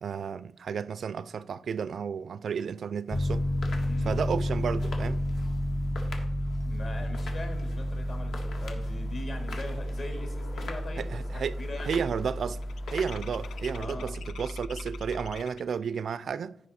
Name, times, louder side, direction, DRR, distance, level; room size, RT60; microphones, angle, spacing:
voice 1, 0.0-3.5 4.0-5.2 11.0-11.6 11.8-12.6 12.9-16.6, right 6 dB, 55° right, 0.3 m, -32 dB
sound 1, 3.1-13.8, left 3 dB, 70° left, 1.7 m, -47 dB
Piano, 3.1-15.3, left 1 dB, 25° left, 0.7 m, -32 dB
voice 2, 3.8-4.2 6.6-12.0 13.8-14.2, left 2 dB, 50° left, 2.2 m, -41 dB
sound 2, 10.9-11.0 11.2-15.8, left 7 dB, 90° left, 0.4 m, -48 dB
15.5 x 5.2 x 4.2 m
wide cardioid pair, 165°, 0 cm